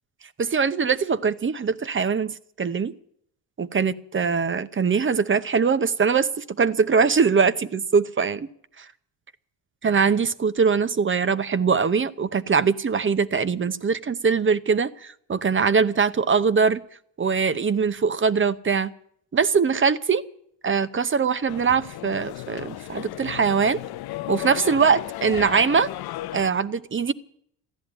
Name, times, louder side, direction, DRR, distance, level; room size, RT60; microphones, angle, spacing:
voice 1, 0.4-2.9 3.6-8.5 8.8-8.9 9.8-16.8 17.2-18.9 19.3-20.2 20.6-23.8 24.3-25.9 26.3-27.1, right 5 dB, 25° right, 0.8 m, -22 dB
sound 1, 21.5-26.5, left 15 dB, 55° left, 0.6 m, -34 dB
14.5 x 11.0 x 9.0 m
supercardioid pair, 80°, 45 cm